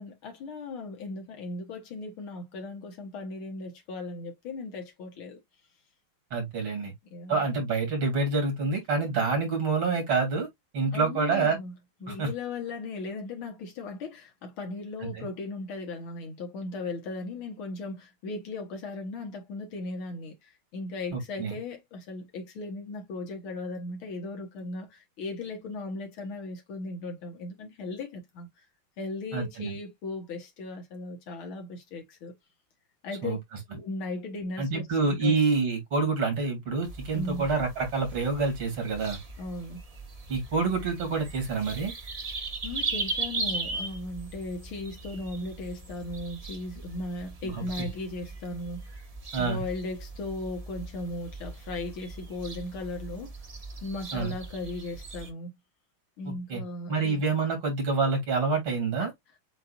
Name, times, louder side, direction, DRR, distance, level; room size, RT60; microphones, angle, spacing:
voice 1, 0.0-5.4 6.8-7.5 10.9-11.7 12.0-28.6 29.0-32.3 33.0-33.4 33.7-35.4 37.1-37.5 39.4-39.8 42.6-48.8 49.4-53.3 53.8-55.5 56.2-57.2, left 2 dB, 80° left, 2.2 m, -37 dB
voice 2, 6.3-6.9 7.3-10.5 10.7-11.6 12.1-12.3 15.0-15.2 21.1-21.5 29.3-29.7 33.2-33.4 34.6-39.2 40.3-41.9 47.4-47.9 49.3-49.6 54.1-54.3 56.3-56.6 56.9-59.1, right 4 dB, 80° right, 3.4 m, -27 dB
sound 1, 36.8-55.3, right 3 dB, 30° right, 0.6 m, -39 dB
7.7 x 2.6 x 2.5 m
omnidirectional pair, 2.3 m